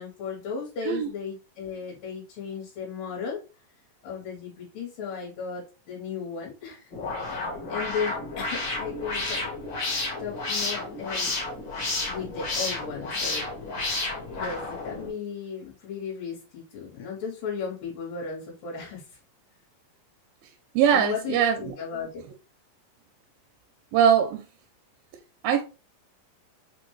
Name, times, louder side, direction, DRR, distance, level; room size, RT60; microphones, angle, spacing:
voice 1, 0.0-3.4 4.0-6.9 7.2-9.5 10.2-11.4 12.1-13.5 14.3-19.0 20.9-22.2, left 6 dB, 75° left, 2.7 m, -35 dB
sound 1, 6.9-15.1, left 2 dB, 55° left, 1.3 m, -31 dB
voice 2, 20.8-21.8 23.9-24.4 25.4-25.6, right 8 dB, 85° right, 2.3 m, -21 dB
5.8 x 2.2 x 3.0 m
omnidirectional pair, 4.0 m